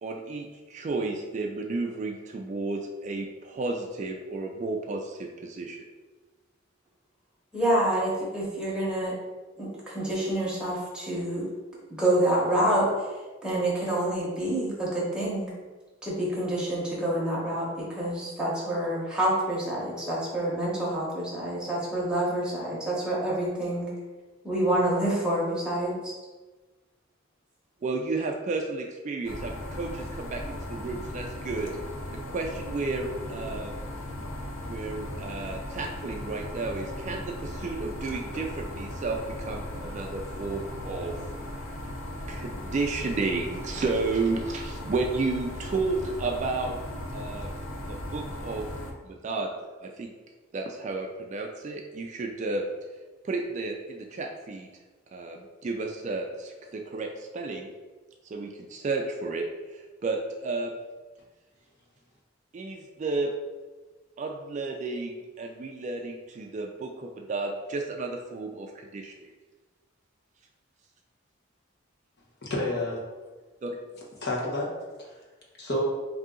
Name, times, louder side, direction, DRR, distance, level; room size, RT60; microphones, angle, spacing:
voice 1, 0.0-5.8 27.8-31.7 32.1-33.7 34.7-41.2 42.3-46.8 47.1-47.6 47.9-48.7 49.0-49.5 49.8-50.1 50.5-52.6 53.2-54.7 55.1-57.7 58.3-60.7 62.5-63.3 64.2-69.1 73.6-73.7, right 3 dB, 35° right, 2 dB, 0.3 m, -32 dB
voice 2, 7.5-9.1 9.6-11.5 11.9-13.1 13.4-15.5 16.0-23.9 24.4-26.1, right 1 dB, 5° right, -7 dB, 1.1 m, -27 dB
sound 1, 29.3-48.9, left 1 dB, 75° left, 0.6 m, -37 dB
voice 3, 72.4-73.1 74.2-75.1 75.6-75.8, left 1 dB, 55° left, -3 dB, 1.0 m, -30 dB
3.7 x 2.7 x 3.7 m, 1.3 s
head